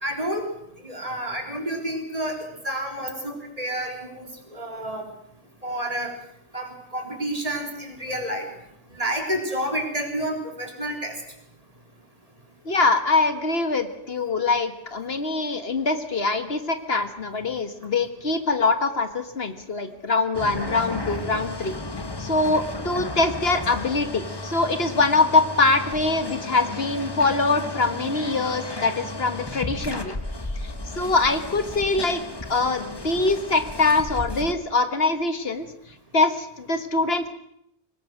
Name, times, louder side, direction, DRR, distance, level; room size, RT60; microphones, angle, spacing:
voice 1, 0.0-0.5 0.8-5.1 5.6-6.1 6.5-8.5 8.9-11.2, right 1 dB, 35° right, 3 dB, 3.9 m, -29 dB
voice 2, 12.7-21.7 22.2-30.1 30.6-32.2 32.5-35.7 36.1-37.3, left 3 dB, 65° left, 9 dB, 1.8 m, -23 dB
sound 1, 20.3-34.5, left 2 dB, 20° left, 1.4 m, -34 dB
23.5 x 20.0 x 6.4 m, 0.74 s
omnidirectional pair, 1.1 m